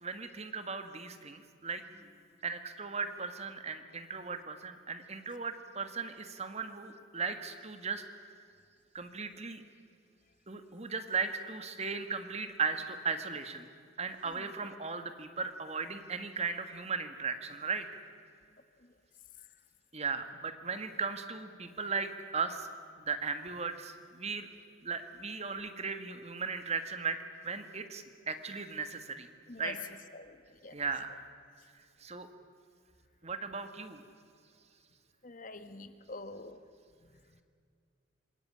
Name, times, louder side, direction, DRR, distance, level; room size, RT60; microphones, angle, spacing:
voice 1, 0.0-1.8 2.4-8.0 8.9-9.6 10.5-13.7 14.0-17.8 19.9-22.7 23.1-24.5 24.8-29.3 29.6-29.8 30.7-31.1 32.0-32.3 33.2-34.0, right 5 dB, 35° right, 9 dB, 1.7 m, -37 dB
voice 2, 35.2-36.6, left 2 dB, 40° left, 10 dB, 1.5 m, -45 dB
26.5 x 21.0 x 9.9 m, 2.3 s
head